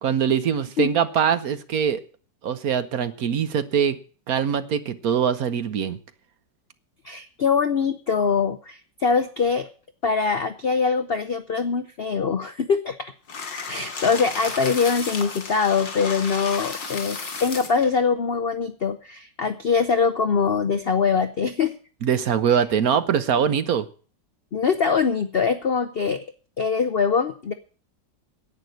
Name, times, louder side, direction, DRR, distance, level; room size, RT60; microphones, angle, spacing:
voice 1, 0.0-2.0 2.4-4.0 4.3-6.0 22.0-23.9, right 8 dB, 60° right, 12 dB, 1.2 m, -22 dB
voice 2, 7.0-9.7 10.0-13.0 13.7-21.7 24.5-26.2 26.6-27.5, left 5 dB, 60° left, 10 dB, 0.6 m, -23 dB
sound 1, 13.3-17.9, left 4 dB, 90° left, 3.2 m, -33 dB
10.5 x 9.0 x 7.8 m, 0.40 s
omnidirectional pair, 2.0 m